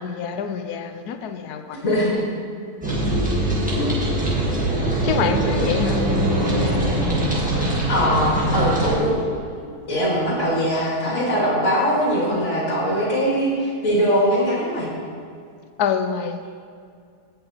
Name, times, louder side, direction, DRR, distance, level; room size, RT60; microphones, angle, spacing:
voice 1, 0.0-1.8 5.0-6.0 15.8-16.5, left 7 dB, 75° left, 8 dB, 1.1 m, -26 dB
voice 2, 1.7-2.2 3.7-3.8 7.9-9.3 9.9-14.9, equal, 50° left, -6 dB, 2.4 m, -21 dB
sound 1, 2.8-9.0, right 1 dB, 5° right, 1.6 m, -22 dB
16.5 x 5.7 x 2.9 m, 2.2 s
omnidirectional pair, 1.7 m